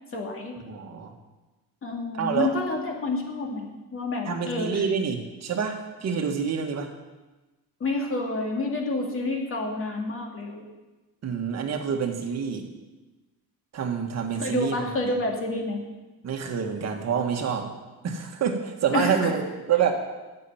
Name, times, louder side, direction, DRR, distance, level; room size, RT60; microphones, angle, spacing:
voice 1, 0.1-0.5 1.8-4.9 7.8-10.6 14.4-15.8 18.9-19.4, left 2 dB, 35° left, 0 dB, 2.4 m, -29 dB
voice 2, 0.7-1.1 2.2-2.5 4.3-6.9 11.2-12.6 13.7-14.8 16.2-17.7 18.0-19.9, right 7 dB, 45° right, 4 dB, 1.6 m, -27 dB
11.5 x 6.9 x 9.0 m, 1.2 s
cardioid pair, 145°, 38 cm